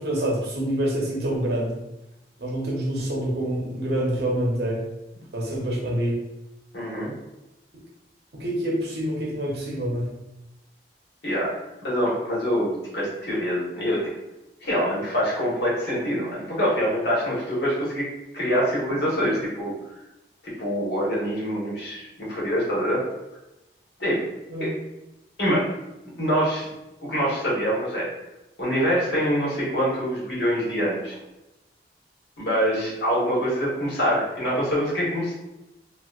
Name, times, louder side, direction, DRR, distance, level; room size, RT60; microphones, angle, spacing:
voice 1, 0.0-1.8 2.4-4.8 5.3-6.2 8.3-10.1 24.5-24.7, right 1 dB, 65° right, -2 dB, 0.8 m, -26 dB
voice 2, 6.7-7.1 11.2-11.5 11.8-14.0 14.6-18.0 18.3-19.8 20.4-23.0 24.0-24.2 24.6-24.7 25.4-25.7 26.2-26.7 27.0-28.1 28.6-31.2 32.4-35.3, equal, 75° left, -7 dB, 1.4 m, -25 dB
2.9 x 2.7 x 2.4 m, 0.96 s
head